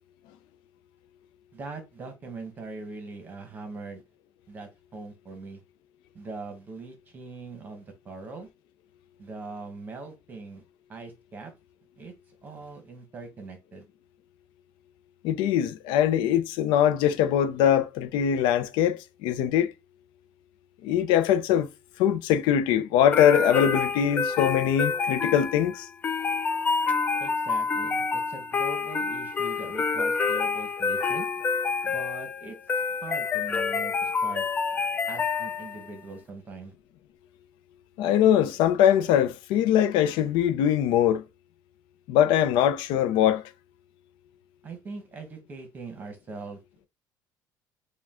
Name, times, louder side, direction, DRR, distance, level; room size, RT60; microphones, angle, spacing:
voice 1, 1.5-4.0 4.5-5.6 6.1-8.5 9.2-10.6 10.9-11.5 12.0-12.1 12.4-13.9 27.2-31.3 31.8-34.5 35.1-36.7 44.6-46.9, right 3 dB, 20° right, 1.1 m, -41 dB
voice 2, 15.2-19.7 20.8-21.7 22.0-25.9 38.0-41.2 42.1-43.4, left 10 dB, 85° left, 0.5 m, -22 dB
sound 1, 23.1-35.9, left 5 dB, 20° left, 0.3 m, -28 dB
4.8 x 2.3 x 3.6 m
cardioid pair, 175°, 8 cm